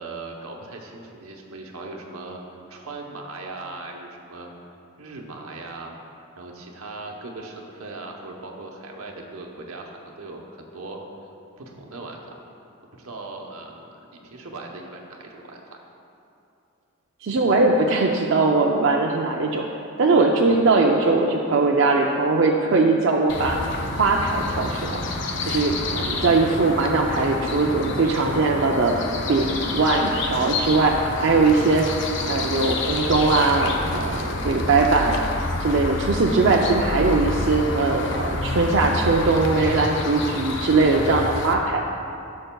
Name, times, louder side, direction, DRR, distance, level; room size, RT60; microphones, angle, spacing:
voice 1, 0.0-2.4 2.7-4.5 5.0-5.9 6.3-11.0 11.6-12.3 12.9-15.8, right 3 dB, 80° right, 1 dB, 1.0 m, -38 dB
voice 2, 17.2-19.6 20.0-23.6 24.0-25.0 25.5-28.9 29.3-31.9 32.3-35.2 35.6-41.8, right 3 dB, 60° right, -1 dB, 0.4 m, -20 dB
sound 1, 23.3-41.5, left 2 dB, 55° left, 0.6 m, -29 dB
sound 2, 33.1-39.3, left 1 dB, 15° right, 1.9 m, -32 dB
13.0 x 6.5 x 2.3 m, 2.6 s
head